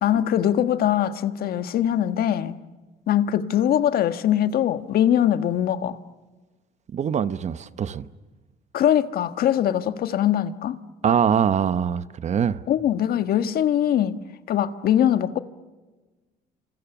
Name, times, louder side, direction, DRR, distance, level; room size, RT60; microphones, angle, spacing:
voice 1, 0.0-2.6 3.1-6.0 8.7-10.8 12.7-14.2 14.5-15.4, left 10 dB, 65° left, 1.5 m, -22 dB
voice 2, 6.9-8.1 11.0-12.6, right 8 dB, 45° right, 1.0 m, -23 dB
28.0 x 27.5 x 7.2 m
cardioid pair, 110°, 17 cm